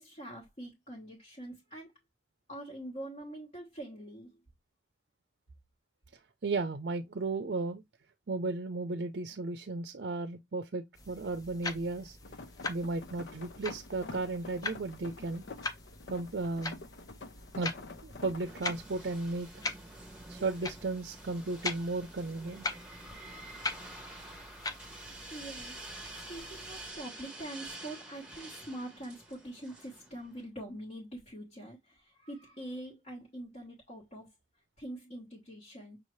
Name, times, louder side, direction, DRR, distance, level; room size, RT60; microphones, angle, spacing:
voice 1, 0.0-1.9 2.5-4.4 25.3-34.3 34.8-36.0, right 1 dB, 35° left, 1.2 m, -44 dB
voice 2, 6.4-7.8 8.3-12.2 12.7-15.4 16.1-16.8 17.6-17.7 18.0-19.6 20.3-22.7, right 3 dB, 60° right, 0.5 m, -35 dB
sound 1, 10.9-26.9, left 3 dB, 20° left, 0.5 m, -43 dB
sound 2, 12.2-18.8, left 3 dB, 70° left, 0.6 m, -48 dB
sound 3, 18.4-30.4, right 2 dB, 5° right, 1.0 m, -48 dB
6.3 x 2.7 x 3.1 m
head